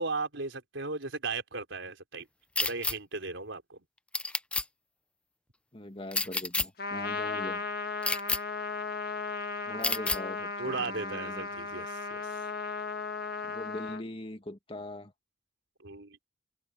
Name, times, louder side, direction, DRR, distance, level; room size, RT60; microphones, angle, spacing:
voice 1, 0.0-2.3 2.6-3.8 10.6-12.4 15.8-16.2, right 3 dB, 80° right, 3.9 m, -36 dB
sound 1, 2.6-2.9 4.1-4.6 6.1-6.7 8.0-8.4 9.8-10.2, left 2 dB, 5° left, 0.5 m, -29 dB
voice 2, 5.7-7.6 9.6-11.5 13.4-15.1, left 1 dB, 30° left, 1.8 m, -41 dB
Trumpet, 6.8-14.0, left 4 dB, 55° left, 1.4 m, -36 dB
head